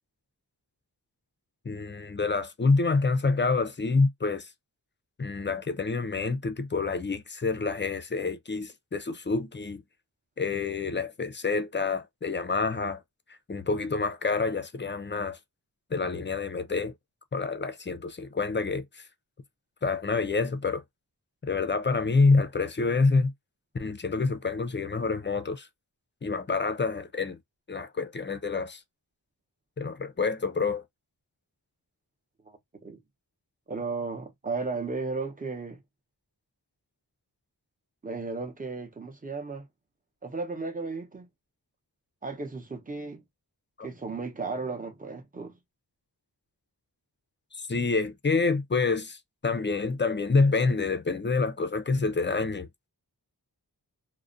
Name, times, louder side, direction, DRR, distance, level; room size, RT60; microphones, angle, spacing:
voice 1, 1.7-4.5 5.2-9.8 10.4-13.0 13.5-15.4 15.9-16.9 17.3-19.0 19.8-20.8 21.4-23.3 23.7-25.7 26.2-27.4 27.7-28.8 29.8-30.8 43.8-43.9 47.5-52.7, left 4 dB, 30° left, 0.4 m, -27 dB
voice 2, 32.5-33.0 33.7-35.8 38.0-39.7 40.2-41.3 42.2-43.2 43.8-45.6, right 4 dB, 20° right, 0.7 m, -35 dB
2.3 x 2.1 x 2.5 m
wide cardioid pair, 50°, 41 cm